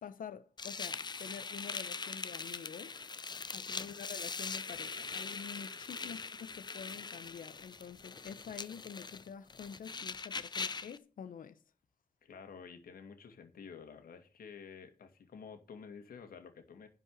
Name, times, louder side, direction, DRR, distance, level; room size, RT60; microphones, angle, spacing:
voice 1, 0.0-3.0 3.5-11.6, left 7 dB, 70° left, 1.0 m, -47 dB
sound 1, 0.6-11.0, left 4 dB, 30° left, 0.6 m, -42 dB
voice 2, 12.2-16.9, left 6 dB, 85° left, 2.2 m, -51 dB
11.0 x 5.4 x 8.5 m
wide cardioid pair, 125°, 15 cm